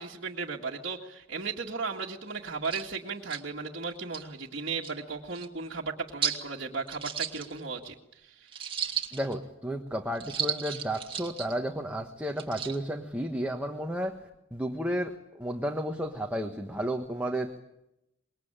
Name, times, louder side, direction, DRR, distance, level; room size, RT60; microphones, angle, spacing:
voice 1, 0.0-8.6, right 4 dB, 55° right, -4 dB, 2.0 m, -36 dB
sound 1, 2.3-2.4 2.6-2.8 3.3-3.4 4.0-4.2 4.8-4.9 5.3-5.5 6.2-6.4 6.9-7.8 8.5-9.3 10.1-11.5 12.3-12.8, right 8 dB, 25° right, 2.1 m, -34 dB
voice 2, 9.1-14.2 14.5-17.7, equal, 5° right, 3 dB, 1.4 m, -32 dB
26.0 x 22.0 x 8.9 m, 0.87 s
head